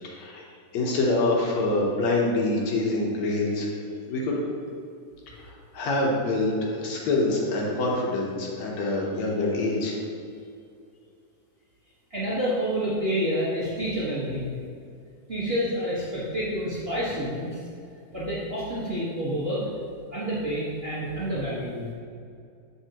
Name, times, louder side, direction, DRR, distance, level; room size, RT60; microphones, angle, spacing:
voice 1, 0.0-0.4 0.7-3.7 4.1-4.4 5.4-10.0, left 2 dB, 70° left, -2 dB, 2.2 m, -25 dB
voice 2, 12.1-14.6 15.3-17.6 18.1-19.6 20.1-21.9, equal, 50° right, -9 dB, 0.7 m, -28 dB
7.9 x 6.7 x 2.9 m, 2.4 s
omnidirectional pair, 3.5 m